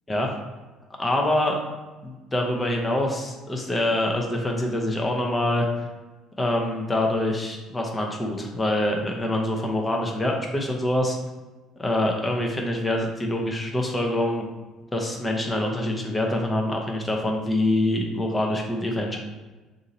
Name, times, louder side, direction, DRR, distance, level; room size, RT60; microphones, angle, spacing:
voice 1, 1.0-1.6 2.0-5.7 6.4-11.2 11.8-14.5 14.9-19.2, left 1 dB, 15° left, 0 dB, 0.6 m, -25 dB
2.8 x 2.6 x 4.1 m, 1.2 s
supercardioid pair, 90°, 0 cm